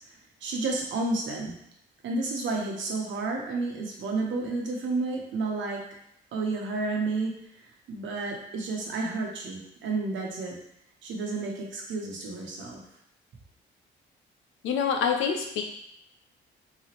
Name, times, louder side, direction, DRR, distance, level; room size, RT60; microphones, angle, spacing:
voice 1, 0.4-1.6 2.0-5.8 6.3-7.3 7.9-10.6 11.0-12.8, right 3 dB, 70° right, 0 dB, 1.0 m, -31 dB
voice 2, 14.6-15.6, left 7 dB, 90° left, 3 dB, 0.7 m, -26 dB
3.8 x 3.0 x 3.0 m, 0.77 s
cardioid pair, 90°, 20 cm